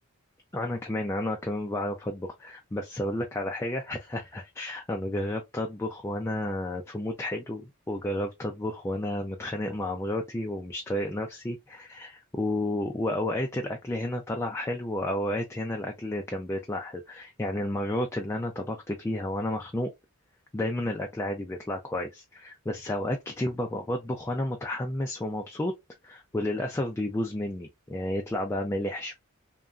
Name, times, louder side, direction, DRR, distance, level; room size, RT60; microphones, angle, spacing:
voice 1, 0.5-19.9 20.5-25.7 26.0-29.1, left 1 dB, 10° left, 0.3 m, -31 dB
2.9 x 2.4 x 2.3 m
head